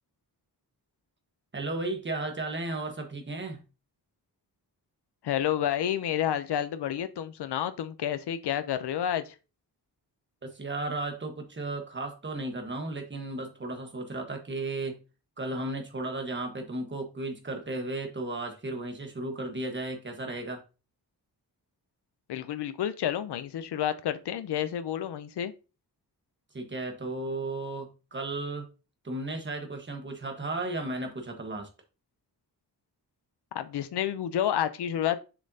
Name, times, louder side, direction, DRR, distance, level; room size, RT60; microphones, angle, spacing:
voice 1, 1.5-3.6 10.4-15.0 15.4-20.6 26.5-28.7 29.0-31.7, right 2 dB, 30° right, 1.3 m, -34 dB
voice 2, 5.2-9.3 22.3-25.5 33.5-35.2, left 10 dB, 85° left, 0.6 m, -30 dB
7.1 x 5.2 x 2.7 m
wide cardioid pair, 160°, 39 cm